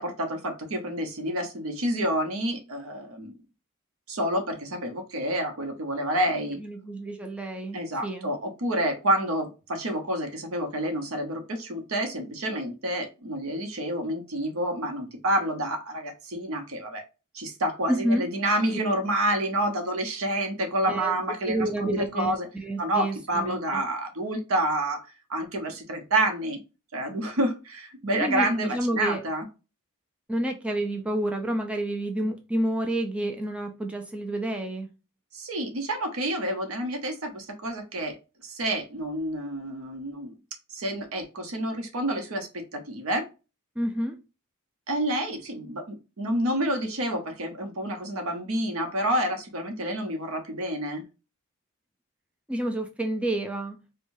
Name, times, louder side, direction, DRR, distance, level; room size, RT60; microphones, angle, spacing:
voice 1, 0.0-3.4 4.1-6.6 7.7-17.0 17.3-22.5 22.8-26.6 26.9-29.5 35.3-38.2 38.4-40.4 40.7-43.3 44.9-51.0, right 1 dB, 70° right, 0.9 m, -28 dB
voice 2, 6.6-8.3 17.9-18.2 20.9-21.2 21.5-23.8 28.2-29.2 30.3-34.9 43.8-44.2 52.5-53.8, right 1 dB, 5° right, 0.4 m, -29 dB
4.6 x 2.3 x 2.6 m
head